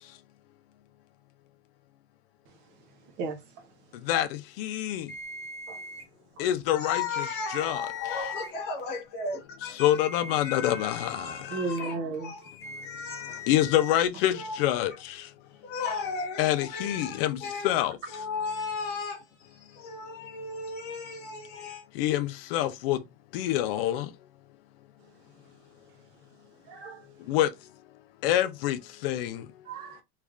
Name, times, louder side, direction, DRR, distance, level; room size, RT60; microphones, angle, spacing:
voice 1, 3.2-3.7 5.7-5.8 6.4-6.5 11.5-12.3 26.7-27.1 29.6-30.0, right 3 dB, 35° right, 0.6 m, -35 dB
voice 2, 4.1-5.1 6.4-7.3 7.5-7.8 9.8-11.6 13.5-15.2 16.4-17.9 22.0-23.0 23.3-24.1 27.3-27.5 28.2-29.4, left 12 dB, 70° left, 0.5 m, -26 dB
sound 1, 5.1-6.0 6.8-8.5 9.8-11.1 12.4-14.0, left 4 dB, 10° left, 0.5 m, -41 dB
voice 3, 6.4-10.0 10.4-12.5 12.8-13.4 14.3-14.6 14.9-15.0 15.5-17.7 18.1-21.8, left 4 dB, 35° left, 1.1 m, -36 dB
3.3 x 2.4 x 3.5 m
cardioid pair, 175°, 30 cm